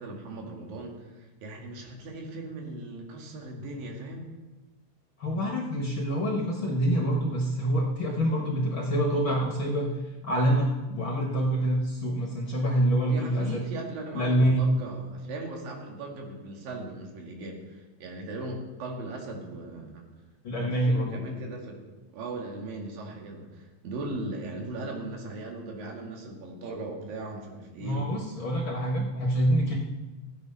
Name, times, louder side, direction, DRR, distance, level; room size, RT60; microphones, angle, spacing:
voice 1, 0.0-4.3 13.1-20.0 20.6-21.8 22.1-28.1, right 2 dB, 90° right, 1 dB, 3.6 m, -38 dB
voice 2, 5.2-9.9 10.2-13.6 14.1-14.7 20.4-21.2 27.8-29.8, right 1 dB, 55° left, 0 dB, 1.4 m, -26 dB
16.0 x 8.1 x 5.4 m, 1.2 s
omnidirectional pair, 3.9 m